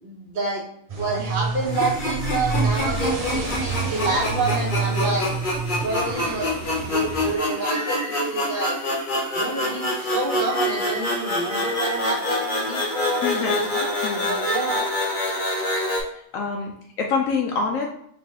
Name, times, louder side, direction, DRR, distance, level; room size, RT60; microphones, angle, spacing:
voice 1, 0.0-0.6 1.0-5.3 5.8-6.5 6.8-8.8 9.3-13.9 14.3-14.9, right 2 dB, 40° right, -3 dB, 1.1 m, -28 dB
sound 1, 0.9-7.4, right 4 dB, 60° right, 0.4 m, -28 dB
sound 2, 1.7-16.0, left 1 dB, 40° left, 1.0 m, -26 dB
sound 3, 7.0-12.1, right 1 dB, 5° right, 1.4 m, -38 dB
voice 2, 13.1-13.6 14.0-14.4 16.3-16.7 17.0-17.9, left 5 dB, 75° left, 1 dB, 1.0 m, -25 dB
5.3 x 2.9 x 2.8 m, 0.68 s
omnidirectional pair, 1.4 m